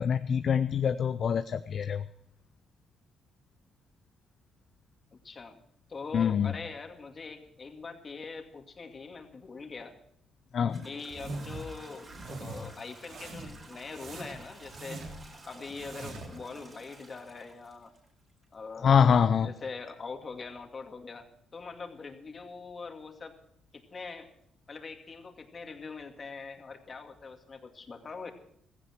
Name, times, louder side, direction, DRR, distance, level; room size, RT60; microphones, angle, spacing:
voice 1, 0.0-2.0 6.1-6.5 10.5-10.8 18.8-19.5, left 7 dB, 55° left, 11 dB, 0.6 m, -25 dB
voice 2, 5.2-5.6 5.9-9.9 10.8-15.0 15.4-17.9 18.5-19.1 19.4-23.4 23.7-24.3 24.7-28.3, left 4 dB, 40° left, 4 dB, 2.3 m, -43 dB
Toilet flush / Trickle dribble, 9.9-10.0 10.6-18.4, right 2 dB, 30° right, 4.6 m, -52 dB
sound 1, 11.1-11.7 12.1-12.6 13.0-13.6 13.9-15.3 15.7-16.3, right 2 dB, 65° right, 3.5 m, -42 dB
16.0 x 15.0 x 4.6 m, 0.72 s
cardioid pair, 90°, 0 cm